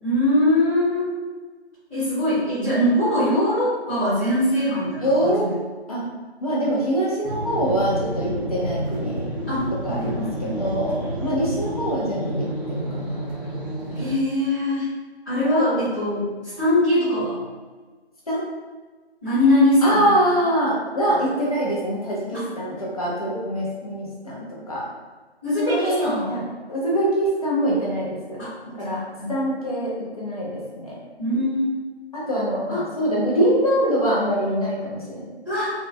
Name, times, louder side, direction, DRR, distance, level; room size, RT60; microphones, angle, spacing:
voice 1, 0.0-1.1 1.9-5.5 9.5-10.6 13.9-14.8 15.2-16.3 16.6-17.4 19.2-20.1 21.0-21.2 22.3-22.4 25.4-26.3 28.4-29.3 31.2-31.8 32.7-32.8 35.4-35.7, left 1 dB, 15° left, -20 dB, 1.4 m, -22 dB
voice 2, 5.0-5.5 5.9-6.0 6.4-9.3 9.8-13.3 15.6-15.8 18.3-18.4 19.8-24.8 25.6-26.4 26.7-28.4 28.7-29.0 29.3-31.0 32.1-35.3, right 1 dB, 35° left, -6 dB, 0.8 m, -24 dB
sound 1, 7.2-14.1, equal, 20° right, 0.8 m, -29 dB
4.5 x 2.3 x 2.2 m, 1.3 s
figure-of-eight pair, 155°, 32 cm